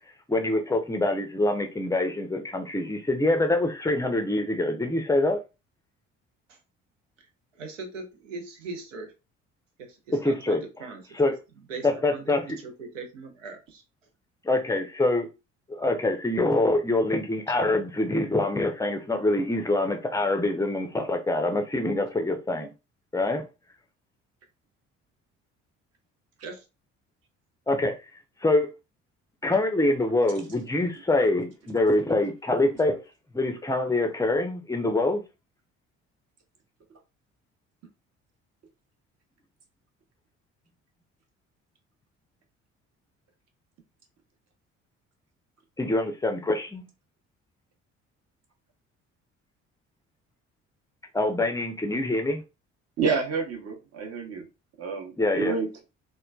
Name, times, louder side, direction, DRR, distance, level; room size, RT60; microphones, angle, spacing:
voice 1, 0.3-5.4 10.1-10.6 11.2-11.3 11.8-12.4 14.4-15.3 15.7-22.7 23.1-23.4 27.7-28.0 28.4-28.7 29.4-33.0 33.3-35.2 45.8-46.9 51.1-52.4 55.2-55.5, left 2 dB, 10° left, 0.5 m, -25 dB
voice 2, 7.5-9.1 9.8-11.3 11.7-13.8 26.4-26.7, right 3 dB, 80° right, 0.6 m, -40 dB
voice 3, 53.0-54.4 54.8-55.8, right 5 dB, 45° right, 0.9 m, -29 dB
3.0 x 2.1 x 2.2 m
figure-of-eight pair, 50°, 37 cm